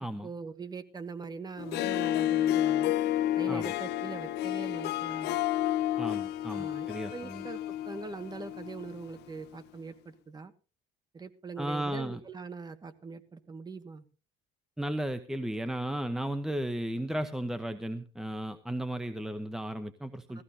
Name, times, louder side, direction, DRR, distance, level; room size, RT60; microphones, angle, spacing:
voice 1, 0.2-2.9 3.4-5.4 6.5-7.6 7.9-10.5 11.1-14.0 20.3-20.4, right 4 dB, 20° right, 9 dB, 1.6 m, -42 dB
Harp, 1.6-9.0, left 13 dB, 65° left, 0.7 m, -30 dB
voice 2, 6.0-7.5 11.6-12.2 14.8-20.4, right 1 dB, 5° right, 10 dB, 0.9 m, -34 dB
18.5 x 15.0 x 2.7 m, 0.34 s
cardioid pair, 120°, 18 cm